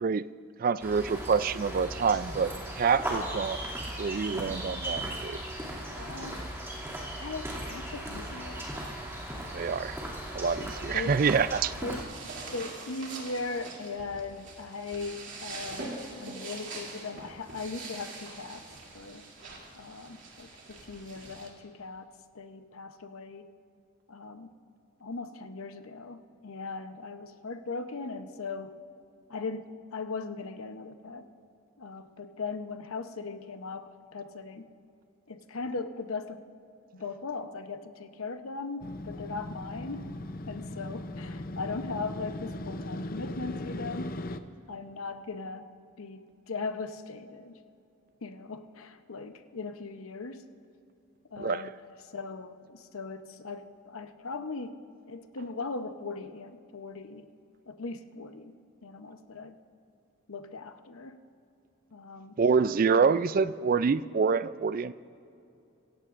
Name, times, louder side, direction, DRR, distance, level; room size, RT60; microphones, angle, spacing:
voice 1, 0.6-2.5 2.8-3.6 4.0-5.4 9.5-9.9 10.3-11.7 51.4-51.6 62.4-64.9, right 5 dB, 40° right, 15 dB, 0.3 m, -26 dB
sound 1, 0.8-12.0, right 1 dB, 10° right, 2.5 m, -37 dB
voice 2, 6.0-6.5 7.2-8.7 10.9-11.2 11.8-12.1 12.5-15.9 16.2-18.6 18.9-19.3 19.7-23.5 24.1-24.5 25.0-28.8 29.3-31.3 31.8-34.7 35.3-36.4 36.9-40.1 40.5-44.1 44.7-45.7 46.0-47.6 48.2-50.5 51.3-51.8 52.1-54.7 55.1-57.3 57.7-58.6 58.8-59.6 60.3-61.2 61.9-62.4 63.0-63.2, left 4 dB, 75° left, 9 dB, 0.8 m, -39 dB
sound 2, 11.7-21.5, right 3 dB, 55° right, 2.8 m, -43 dB
Motorcycle, 38.8-44.4, left 1 dB, 40° left, 0.5 m, -38 dB
26.0 x 16.0 x 2.5 m, 2.6 s
head